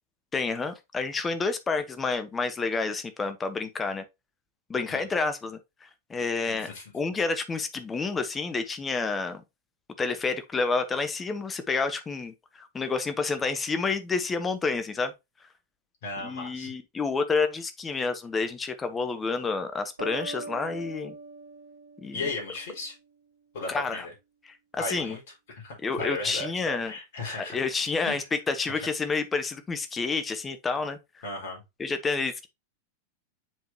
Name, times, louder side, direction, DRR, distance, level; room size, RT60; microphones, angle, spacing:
voice 1, 0.3-4.0 4.7-5.6 6.1-6.7 6.9-9.4 10.0-15.1 16.2-21.1 22.0-22.2 23.7-24.1 24.5-24.6 24.8-25.2 25.8-26.9 27.5-31.0 31.8-32.5, left 4 dB, 15° left, 1.1 m, -29 dB
voice 2, 6.5-6.9 16.0-16.7 22.1-23.0 23.5-24.1 24.8-25.2 25.6-27.6 28.0-28.3 28.7-28.9 31.2-31.6, left 2 dB, 55° left, 4.8 m, -36 dB
sound 1, 20.0-22.8, right 3 dB, 80° right, 1.3 m, -41 dB
7.5 x 5.1 x 2.9 m
figure-of-eight pair, 90°, 0 cm